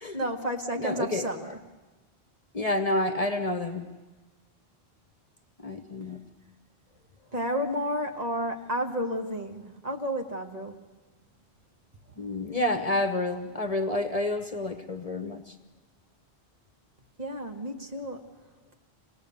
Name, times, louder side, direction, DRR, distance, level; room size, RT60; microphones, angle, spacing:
voice 1, 0.1-1.6 7.3-10.8 17.2-18.3, equal, 40° right, 3 dB, 1.5 m, -31 dB
voice 2, 0.8-1.3 2.5-3.9 5.6-6.2 12.2-15.5, left 1 dB, 35° left, 8 dB, 1.0 m, -29 dB
26.0 x 18.5 x 7.0 m, 1.2 s
omnidirectional pair, 1.1 m